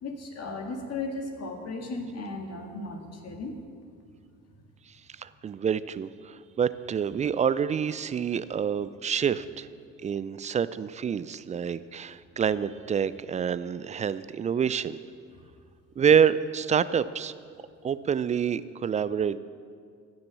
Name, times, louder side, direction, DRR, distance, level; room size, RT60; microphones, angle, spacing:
voice 1, 0.0-3.6 4.6-4.7, left 3 dB, 40° left, 3 dB, 2.0 m, -36 dB
voice 2, 5.2-9.7 10.0-15.0 16.0-17.3 17.8-19.4, right 7 dB, 20° right, 15 dB, 0.3 m, -27 dB
15.5 x 6.7 x 7.4 m, 2.2 s
hypercardioid pair, 65°, 38 cm